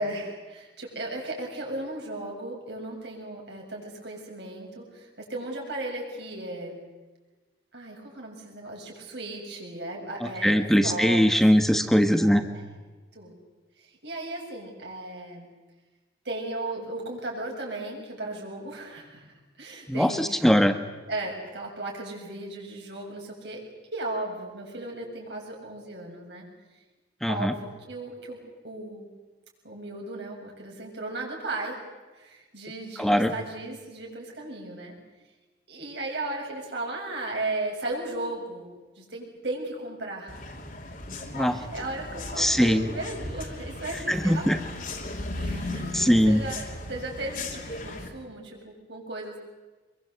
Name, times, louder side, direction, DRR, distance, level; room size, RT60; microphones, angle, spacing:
voice 1, 0.0-6.8 7.7-11.2 12.1-12.7 13.1-13.4 13.8-15.5 16.3-20.2 21.1-23.6 23.9-26.5 27.3-28.4 28.6-29.1 29.6-31.8 32.1-35.0 35.7-40.4 41.4-44.5 45.4-46.6 46.9-49.4, right 2 dB, 65° right, -1 dB, 7.2 m, -36 dB
voice 2, 10.2-12.4 19.9-20.8 27.2-27.5 33.0-33.3 41.3-41.6 42.4-42.9 44.1-44.6 45.9-46.4, equal, ahead, 9 dB, 1.3 m, -21 dB
sound 1, 40.3-48.1, left 2 dB, 45° left, 3.1 m, -36 dB
25.5 x 23.0 x 8.1 m, 1.2 s
head